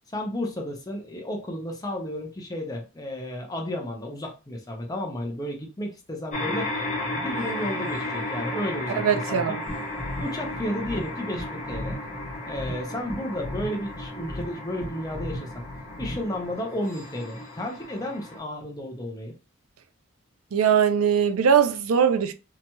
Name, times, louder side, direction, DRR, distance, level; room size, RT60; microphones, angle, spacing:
voice 1, 0.1-6.8 7.1-9.4 10.2-12.0 12.5-15.6 16.0-19.3, left 1 dB, 15° left, 0.5 m, -32 dB
sound 1, 6.3-18.4, left 1 dB, 35° left, 1.0 m, -34 dB
voice 2, 8.9-9.6 20.5-22.3, right 7 dB, 90° right, 0.4 m, -21 dB
sound 2, 9.7-16.5, left 1 dB, 30° right, 1.1 m, -37 dB
2.9 x 2.8 x 2.2 m
head